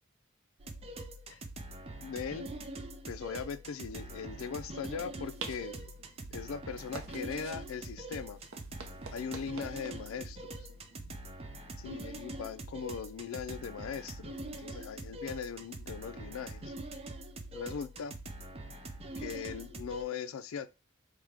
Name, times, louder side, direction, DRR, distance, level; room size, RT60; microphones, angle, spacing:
sound 1, 0.6-20.0, right 2 dB, 30° right, 0.4 m, -44 dB
voice 1, 2.0-2.5 3.1-5.9 6.3-8.4 9.1-10.7 11.8-16.7 17.5-18.2 19.2-20.7, left 6 dB, 90° left, 0.4 m, -40 dB
sound 2, 4.6-12.2, right 4 dB, 70° right, 0.6 m, -50 dB
4.7 x 2.1 x 3.5 m
head